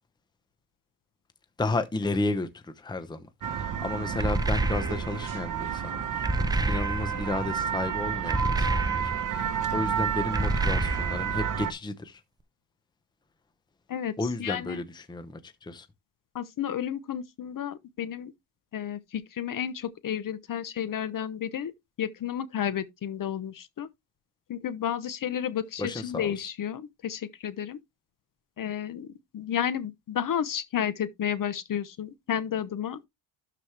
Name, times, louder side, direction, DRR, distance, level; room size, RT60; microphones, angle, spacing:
voice 1, 1.6-6.2 6.7-12.2 14.2-15.9 25.8-26.3, left 2 dB, 10° left, 0.8 m, -33 dB
sound 1, 3.4-11.7, right 8 dB, 40° right, 1.0 m, -31 dB
sound 2, 4.2-5.3 6.2-7.3 8.3-9.4 10.3-11.4, right 2 dB, 10° right, 0.4 m, -28 dB
voice 2, 13.9-14.8 16.3-18.3 18.7-21.7 22.0-23.9 24.5-27.8 28.6-33.0, left 9 dB, 40° left, 0.9 m, -32 dB
12.0 x 4.9 x 3.3 m
cardioid pair, 130°, 49 cm